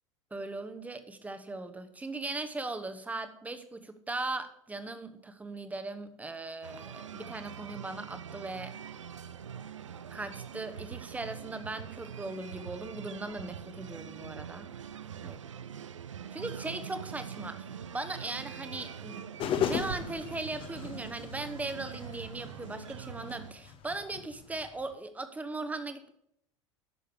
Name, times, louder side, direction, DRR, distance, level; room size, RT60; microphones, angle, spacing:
voice 1, 0.3-8.7 10.1-14.7 15.2-15.4 16.3-19.2 19.5-26.1, right 2 dB, 10° right, 9 dB, 1.1 m, -39 dB
sound 1, 6.6-23.5, right 8 dB, 75° right, 0.5 m, -44 dB
sound 2, 19.4-24.9, left 8 dB, 35° left, 1.0 m, -37 dB
10.5 x 6.5 x 6.8 m, 0.74 s
figure-of-eight pair, 80°, 16 cm